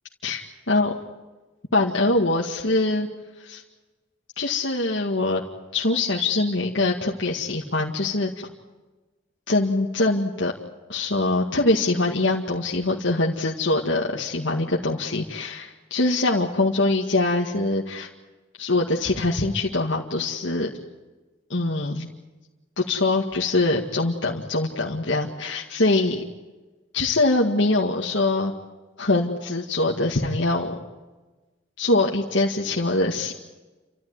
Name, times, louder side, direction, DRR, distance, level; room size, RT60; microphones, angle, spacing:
voice 1, 1.7-3.1 3.4-3.6 4.4-5.4 5.7-8.3 9.5-10.5 10.9-18.1 18.6-20.7 21.5-22.1 22.8-26.2 26.9-28.5 29.0-30.7 31.8-33.3, left 2 dB, 75° left, -2 dB, 2.1 m, -23 dB
29.5 x 14.5 x 9.8 m, 1.2 s
head